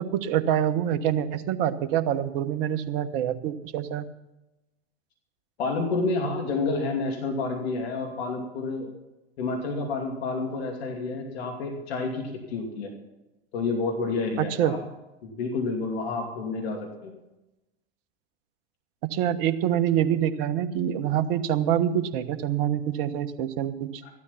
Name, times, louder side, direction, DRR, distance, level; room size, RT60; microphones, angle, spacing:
voice 1, 0.0-4.0 14.4-14.8 19.0-24.0, right 10 dB, 55° right, 9 dB, 1.3 m, -26 dB
voice 2, 5.6-8.9 9.4-12.9 13.5-14.8 15.2-17.1 24.0-24.1, left 3 dB, 75° left, 2 dB, 2.6 m, -29 dB
14.5 x 12.0 x 5.8 m, 0.96 s
hypercardioid pair, 95°, 32 cm